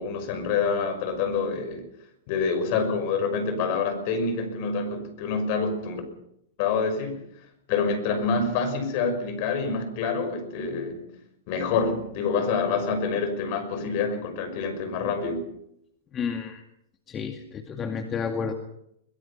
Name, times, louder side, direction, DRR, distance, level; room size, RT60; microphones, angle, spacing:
voice 1, 0.0-1.9 2.3-6.0 6.6-7.2 7.7-11.1 11.5-15.5, left 5 dB, 50° left, 9 dB, 5.9 m, -27 dB
voice 2, 16.1-16.6 17.1-18.5, left 6 dB, 25° left, 5 dB, 2.1 m, -31 dB
22.0 x 22.0 x 5.9 m, 0.75 s
hypercardioid pair, 110°, 0 cm